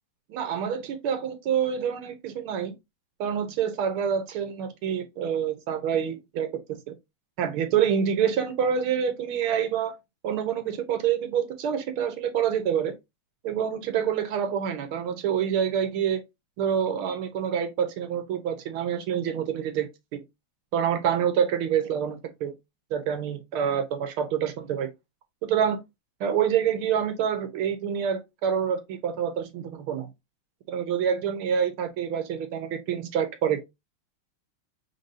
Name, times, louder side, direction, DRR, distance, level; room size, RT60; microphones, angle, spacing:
voice 1, 0.3-2.7 3.2-6.9 7.4-9.9 10.2-12.9 13.4-16.2 16.6-20.2 20.7-22.5 22.9-24.9 25.4-25.8 26.2-30.1 30.7-33.6, right 8 dB, 80° right, 1.7 m, -27 dB
5.3 x 3.6 x 2.7 m
omnidirectional pair, 2.4 m